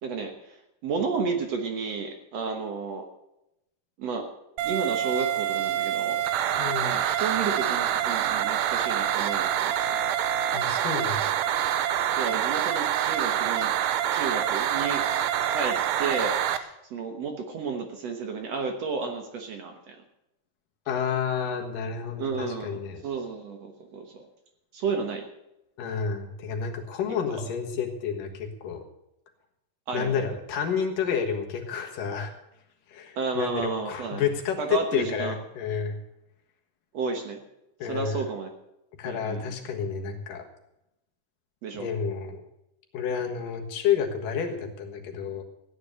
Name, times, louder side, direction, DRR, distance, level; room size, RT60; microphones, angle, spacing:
voice 1, 0.0-0.6 0.8-3.1 4.0-4.3 4.6-6.2 6.8-10.1 12.2-13.7 14.1-15.1 15.5-20.0 22.2-24.3 24.7-25.3 29.9-30.3 33.2-34.2 34.6-35.4 36.9-37.4 37.9-38.5 39.0-39.6 41.6-41.9, right 5 dB, 60° right, 4 dB, 2.1 m, -32 dB
sound 1, 4.6-16.6, right 10 dB, 80° right, 2.2 m, -26 dB
voice 2, 6.6-6.9 10.5-11.4 20.9-23.0 25.8-28.8 29.9-32.3 32.9-36.0 37.8-38.2 39.0-40.4 41.7-42.4 42.9-45.4, left 7 dB, 75° left, 3 dB, 3.1 m, -30 dB
15.0 x 9.8 x 6.6 m, 0.87 s
omnidirectional pair, 3.9 m